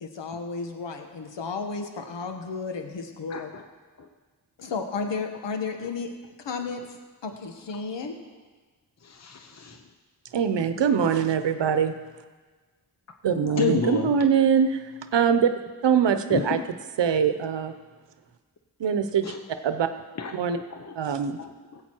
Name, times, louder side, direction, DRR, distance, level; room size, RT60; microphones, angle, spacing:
voice 1, 0.0-3.5 4.6-6.1 6.4-8.1 13.3-13.9, left 4 dB, 85° left, 5 dB, 1.2 m, -33 dB
voice 2, 3.3-3.6 4.0-4.1 9.0-9.8 13.6-14.2 16.3-16.6 19.2-19.4 20.2-20.3 20.7-20.9 21.4-21.8, left 5 dB, 40° left, 5 dB, 0.9 m, -30 dB
voice 3, 10.3-11.9 13.2-15.5 15.8-16.6 17.0-17.7 18.8-19.3 19.6-19.9 20.3-20.6 21.0-21.4, right 7 dB, 80° right, 9 dB, 0.9 m, -23 dB
16.0 x 8.0 x 4.5 m, 1.4 s
cardioid pair, 60°, 42 cm